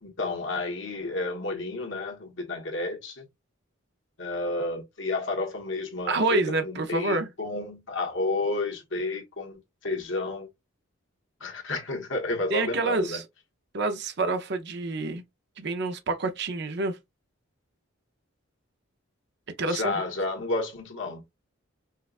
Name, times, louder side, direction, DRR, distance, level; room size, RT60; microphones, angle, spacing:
voice 1, 0.0-3.2 4.2-10.5 11.4-13.2 19.6-21.2, left 2 dB, 60° left, 1.3 m, -31 dB
voice 2, 6.0-7.3 12.5-13.2 13.7-15.2 15.6-17.0 19.6-19.9, right 2 dB, 55° right, 0.6 m, -27 dB
5.5 x 2.3 x 2.5 m
head